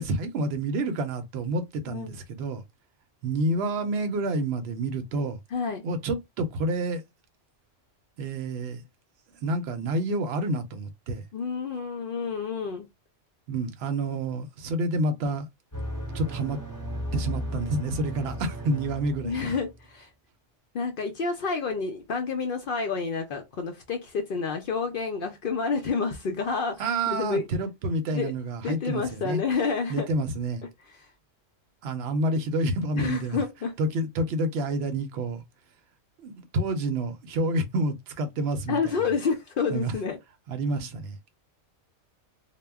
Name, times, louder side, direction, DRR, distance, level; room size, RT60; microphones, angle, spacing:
voice 1, 0.0-2.6 3.2-5.4 5.8-7.0 8.2-8.8 9.4-11.3 13.5-15.5 16.1-16.6 17.1-19.5 26.8-29.4 29.9-30.6 31.8-33.4 33.8-35.4 36.2-39.0 39.7-39.9 40.5-41.2, right 2 dB, 65° right, 0.7 m, -28 dB
voice 2, 1.9-2.2 5.5-5.8 11.3-12.9 19.2-20.1 20.7-27.4 28.1-28.3 28.6-30.1 30.9-31.1 33.0-33.8 38.7-40.2, left 5 dB, 60° left, 0.6 m, -29 dB
sound 1, 15.7-19.8, equal, 20° left, 0.6 m, -35 dB
2.2 x 2.0 x 3.4 m
omnidirectional pair, 1.3 m